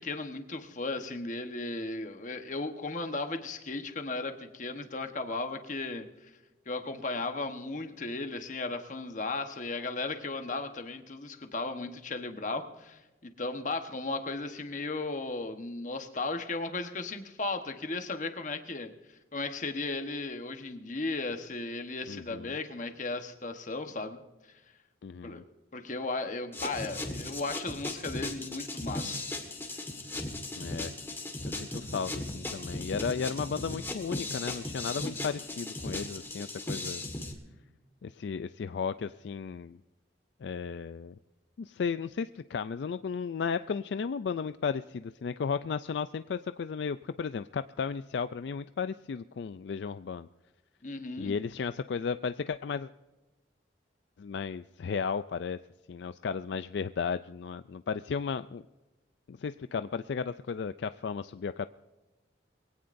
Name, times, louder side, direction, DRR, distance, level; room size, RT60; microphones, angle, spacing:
voice 1, 0.0-6.1 6.7-18.9 19.3-24.2 25.2-25.4 25.7-29.2 50.8-51.3, left 3 dB, 40° left, 7 dB, 1.2 m, -35 dB
voice 2, 22.1-22.6 25.0-25.4 30.6-30.9 31.4-37.0 38.0-39.8 40.4-41.1 41.6-50.3 51.2-52.9 54.2-55.6 55.9-58.6 59.3-61.7, left 6 dB, 65° left, 12 dB, 0.4 m, -34 dB
sound 1, 26.5-37.3, left 2 dB, 10° left, 1.6 m, -37 dB
22.5 x 17.0 x 2.6 m, 1.1 s
head